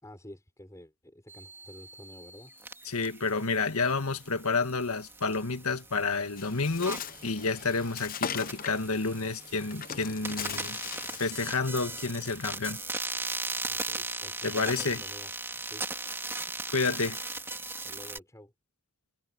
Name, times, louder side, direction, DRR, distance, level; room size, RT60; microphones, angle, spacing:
voice 1, 0.0-2.5 13.7-15.3 15.7-15.9 17.8-18.5, left 1 dB, 15° left, 5.0 m, -50 dB
sound 1, 1.3-18.2, right 3 dB, 10° right, 2.8 m, -39 dB
voice 2, 2.8-10.8 11.2-12.8 14.4-15.0 16.7-17.2, left 4 dB, 75° left, 1.7 m, -30 dB
Bird, 6.4-11.5, left 8 dB, 40° left, 0.8 m, -40 dB
head